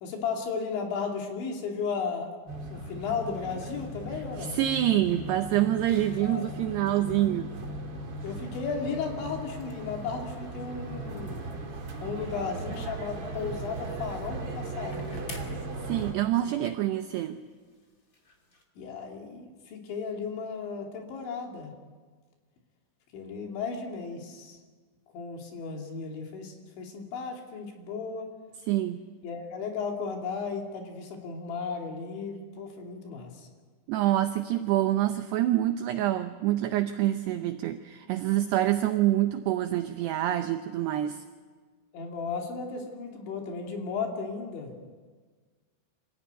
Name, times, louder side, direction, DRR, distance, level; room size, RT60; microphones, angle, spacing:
voice 1, 0.0-2.3 2.7-4.6 6.2-6.5 8.2-11.5 12.0-15.4 16.4-16.6 18.8-21.7 23.1-24.6 25.1-28.3 29.2-33.5 41.9-44.9, left 5 dB, 65° left, 2 dB, 4.8 m, -35 dB
sound 1, 2.5-16.1, right 1 dB, 40° right, 2.3 m, -38 dB
voice 2, 4.4-7.5 15.8-17.4 28.6-29.0 33.9-41.2, right 13 dB, 80° right, 8 dB, 2.4 m, -26 dB
sound 2, 8.2-18.6, left 2 dB, 30° left, 1.7 m, -55 dB
26.0 x 16.5 x 9.3 m, 1.5 s
omnidirectional pair, 5.7 m